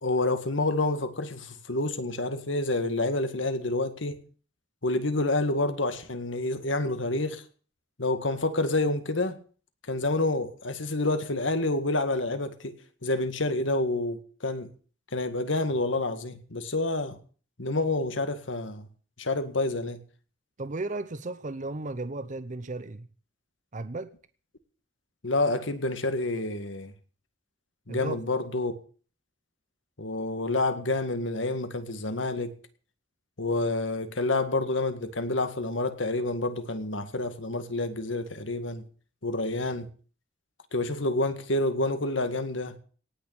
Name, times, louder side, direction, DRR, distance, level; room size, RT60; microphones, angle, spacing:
voice 1, 0.0-4.2 4.8-7.4 8.0-9.4 9.9-12.8 13.0-14.7 15.1-17.2 17.6-18.9 19.2-20.0 25.2-26.9 27.9-28.7 30.0-32.6 33.4-38.8 39.2-39.9 40.7-42.8, left 2 dB, 85° left, 1.9 m, -28 dB
voice 2, 20.6-23.1 23.7-24.1 27.9-28.2, right 2 dB, 40° right, 0.7 m, -35 dB
18.0 x 6.6 x 8.8 m
head